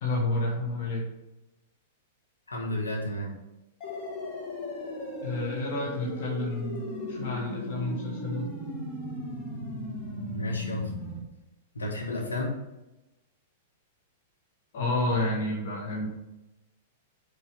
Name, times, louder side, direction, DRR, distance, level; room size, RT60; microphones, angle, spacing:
voice 1, 0.0-1.1 5.2-6.8 7.1-8.5 14.7-16.1, left 2 dB, 50° left, -1 dB, 1.2 m, -30 dB
voice 2, 2.5-3.3 10.3-10.9 11.7-12.5, left 1 dB, 75° left, -1 dB, 1.7 m, -32 dB
sound 1, 3.8-11.2, left 1 dB, 35° left, 1.7 m, -36 dB
5.5 x 4.5 x 5.0 m, 0.97 s
figure-of-eight pair, 100°, 0 cm